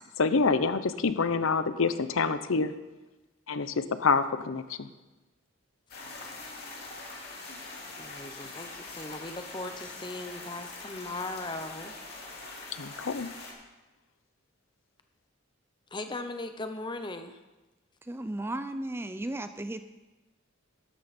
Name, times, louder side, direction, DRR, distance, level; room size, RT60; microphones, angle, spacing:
voice 1, 0.2-2.7 3.5-4.9 12.8-13.3, left 4 dB, 80° left, 12 dB, 0.7 m, -27 dB
sound 1, 5.9-13.5, left 3 dB, 50° left, 2.6 m, -43 dB
voice 2, 7.9-11.9 15.9-17.4, left 2 dB, 20° left, 7 dB, 0.8 m, -38 dB
voice 3, 18.1-19.8, right 1 dB, 10° right, 10 dB, 0.3 m, -35 dB
12.5 x 12.0 x 4.3 m, 1.1 s
head